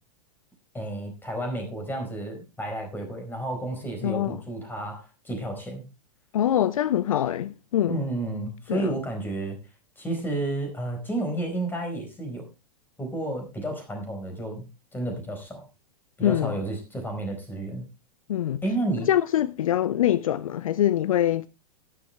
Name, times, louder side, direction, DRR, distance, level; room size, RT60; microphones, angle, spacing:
voice 1, 0.7-5.8 7.9-9.6 10.0-12.4 13.0-14.6 14.9-15.7 16.2-17.9 18.6-19.1, right 2 dB, 10° left, 4.6 m, -31 dB
voice 2, 4.0-4.4 6.3-8.0 8.7-8.9 16.2-16.5 18.3-18.6 19.1-21.5, left 11 dB, 60° left, 0.6 m, -24 dB
13.0 x 11.0 x 3.3 m
figure-of-eight pair, 100°, 20 cm